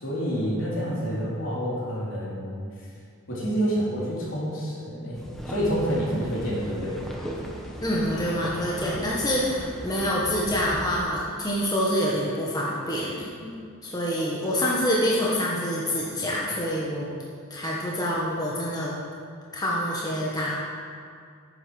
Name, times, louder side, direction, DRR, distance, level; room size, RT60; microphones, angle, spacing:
voice 1, 0.0-2.6 3.3-7.0, equal, 65° left, -6 dB, 3.6 m, -28 dB
sound 1, 5.1-11.1, equal, ahead, 1.2 m, -37 dB
voice 2, 7.8-13.5 13.8-17.1 17.5-19.0 19.5-20.6, equal, 20° left, -5 dB, 1.4 m, -26 dB
9.8 x 8.9 x 6.3 m, 2.2 s
head